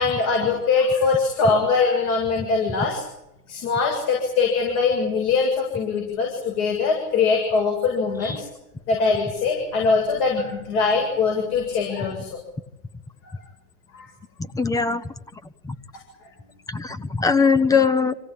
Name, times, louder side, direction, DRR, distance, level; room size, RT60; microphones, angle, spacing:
voice 1, 0.0-3.0 3.5-8.4 8.9-12.4 13.9-14.1 16.2-16.3, left 4 dB, 45° left, 2 dB, 7.6 m, -22 dB
voice 2, 14.5-15.0 15.6-15.7 16.7-18.1, left 5 dB, 5° left, 14 dB, 1.0 m, -20 dB
27.5 x 17.5 x 8.9 m, 0.86 s
supercardioid pair, 155°, 48 cm